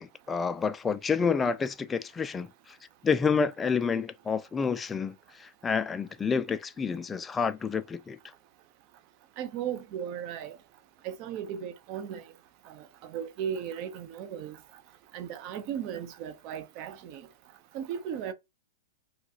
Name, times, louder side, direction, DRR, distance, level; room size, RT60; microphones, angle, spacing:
voice 1, 0.0-2.5 3.0-8.2, left 5 dB, 15° left, 0.3 m, -29 dB
voice 2, 9.4-10.6 11.0-12.2 12.7-14.6 15.1-17.3 17.7-18.3, right 9 dB, 45° right, 0.6 m, -36 dB
3.6 x 2.3 x 2.8 m
hypercardioid pair, 115°, 0 cm